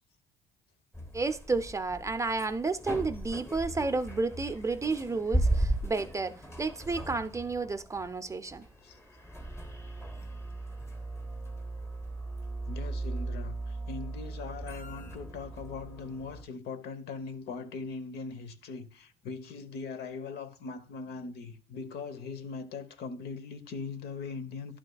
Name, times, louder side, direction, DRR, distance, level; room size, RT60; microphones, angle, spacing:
sound 1, 0.9-16.4, right 1 dB, 15° left, 1.2 m, -36 dB
voice 1, 1.1-8.6, right 3 dB, 20° right, 0.5 m, -31 dB
voice 2, 12.7-24.8, left 4 dB, 70° left, 0.9 m, -40 dB
11.0 x 6.3 x 2.3 m
cardioid pair, 110°, 17 cm